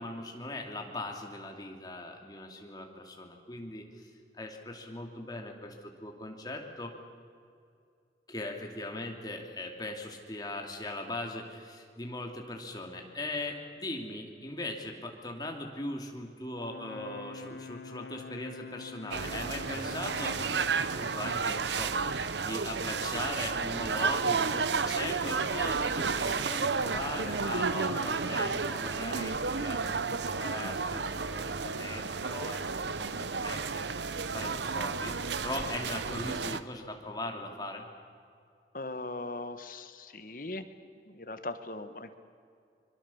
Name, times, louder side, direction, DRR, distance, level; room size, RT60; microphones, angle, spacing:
voice 1, 0.0-6.9 8.3-33.8 34.2-35.2 35.4-37.8, left 2 dB, 20° left, 2 dB, 2.7 m, -40 dB
Brass instrument, 16.6-20.8, left 4 dB, 75° left, 0.9 m, -46 dB
sound 1, 19.1-36.6, right 5 dB, 90° right, 0.9 m, -32 dB
voice 2, 38.7-40.6 41.0-42.1, left 2 dB, 50° left, 9 dB, 1.5 m, -39 dB
25.0 x 23.5 x 7.2 m, 2.4 s
head